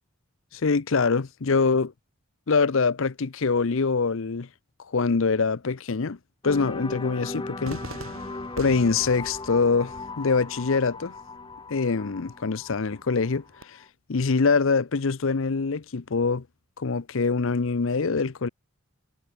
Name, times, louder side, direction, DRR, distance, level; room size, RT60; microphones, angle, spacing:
voice 1, 0.5-1.9 2.5-4.5 4.9-6.2 6.4-7.8 8.6-11.1 11.7-13.8 14.1-16.4 16.8-18.5, left 4 dB, 65° left, 0.7 m, -24 dB
sound 1, 6.4-13.8, left 3 dB, 20° left, 0.8 m, -38 dB
Cheering / Fireworks, 7.6-13.6, right 2 dB, 75° right, 7.4 m, -45 dB
head